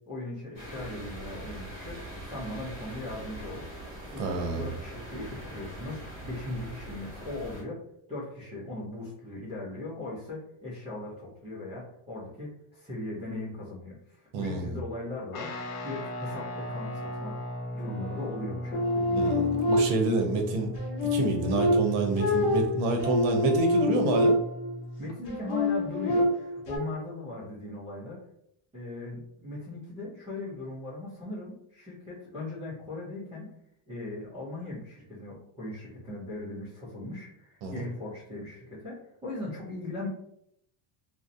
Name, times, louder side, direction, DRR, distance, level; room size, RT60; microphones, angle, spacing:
voice 1, 0.1-3.6 4.1-7.8 8.1-15.5 15.8-17.4 17.7-19.4 25.0-28.2 28.7-33.5 33.9-40.1, left 2 dB, 15° right, -10 dB, 0.3 m, -39 dB
sound 1, 0.5-7.6, right 1 dB, 5° left, 0.9 m, -42 dB
voice 2, 4.2-4.7 14.3-14.8 19.2-20.7 21.1-24.4 37.6-37.8, right 3 dB, 85° right, 3 dB, 0.7 m, -28 dB
Guitar, 15.3-25.2, left 1 dB, 90° left, 0.7 m, -37 dB
sound 2, 18.7-20.2 20.8-24.8 25.3-26.8, left 1 dB, 55° left, 0.7 m, -26 dB
2.6 x 2.0 x 2.4 m, 0.76 s
cardioid pair, 170°, 48 cm